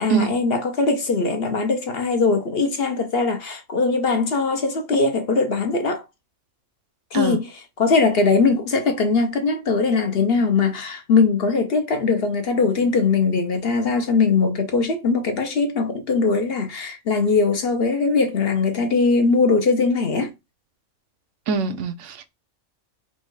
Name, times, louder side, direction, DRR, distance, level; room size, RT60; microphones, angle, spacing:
voice 1, 0.0-6.0 7.1-7.5 7.8-20.3, left 4 dB, 55° left, 0.9 m, -21 dB
voice 2, 21.5-22.3, right 5 dB, 75° right, 1.0 m, -24 dB
4.5 x 2.4 x 4.7 m
omnidirectional pair, 1.3 m